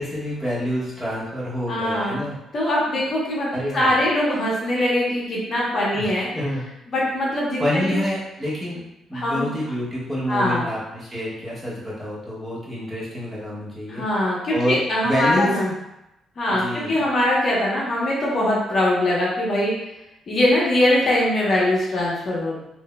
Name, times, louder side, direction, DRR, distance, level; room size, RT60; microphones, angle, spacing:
voice 1, 0.0-2.4 3.5-4.0 5.9-6.7 7.6-8.8 9.1-15.5 16.5-17.0, equal, 10° right, -8 dB, 1.3 m, -27 dB
voice 2, 1.7-2.2 2.5-3.5 3.7-6.3 6.9-7.9 9.1-9.5 10.3-10.7 13.9-15.7 16.4-16.6 16.9-19.7 20.3-22.5, left 1 dB, 50° left, -5 dB, 0.9 m, -22 dB
3.5 x 2.6 x 2.2 m, 0.89 s
cardioid pair, 90°, 0 cm